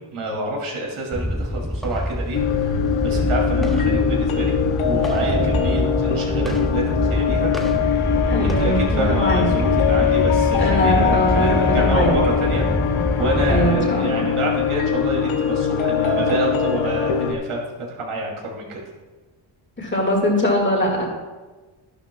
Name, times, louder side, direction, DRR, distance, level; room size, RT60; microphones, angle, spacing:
voice 1, 0.1-4.6 4.8-17.6 17.9-18.8, right 2 dB, 90° right, -2 dB, 2.9 m, -27 dB
sound 1, 1.1-13.7, equal, ahead, 0.6 m, -24 dB
sound 2, 2.3-17.3, left 7 dB, 80° left, 0.8 m, -22 dB
voice 2, 8.3-9.5 10.6-12.1 13.5-14.3 19.8-21.1, equal, 25° left, 0 dB, 2.0 m, -22 dB
12.0 x 11.5 x 2.3 m, 1.3 s
wide cardioid pair, 145°, 48 cm